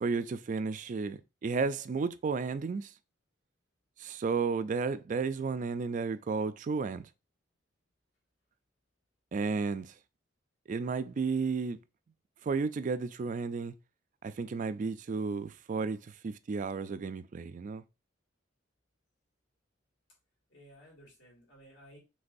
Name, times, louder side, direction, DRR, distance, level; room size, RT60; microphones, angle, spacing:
voice 1, 0.0-2.9 4.0-7.1 9.3-9.9 10.7-11.8 12.4-13.7 14.2-16.0 16.2-17.8, right 4 dB, 40° right, 0.3 m, -33 dB
voice 2, 20.5-22.0, equal, 70° left, 2.7 m, -56 dB
5.2 x 3.4 x 2.5 m
head